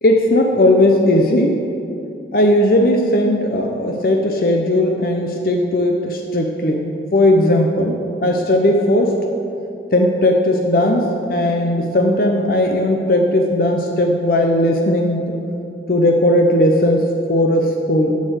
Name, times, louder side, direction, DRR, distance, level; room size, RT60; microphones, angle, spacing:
voice 1, 0.0-1.5 2.3-9.1 9.9-15.3 15.9-18.1, left 1 dB, 55° left, 2 dB, 0.7 m, -17 dB
8.3 x 6.5 x 7.8 m, 2.7 s
head